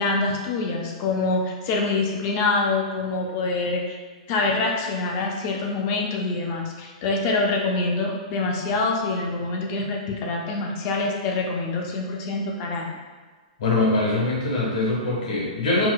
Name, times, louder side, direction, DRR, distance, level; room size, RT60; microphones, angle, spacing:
voice 1, 0.0-4.0 4.3-12.9, left 3 dB, 25° left, 0 dB, 0.4 m, -25 dB
voice 2, 13.6-15.9, left 2 dB, 60° left, -5 dB, 1.3 m, -23 dB
4.5 x 2.2 x 2.3 m, 1.4 s
hypercardioid pair, 175°, 4 cm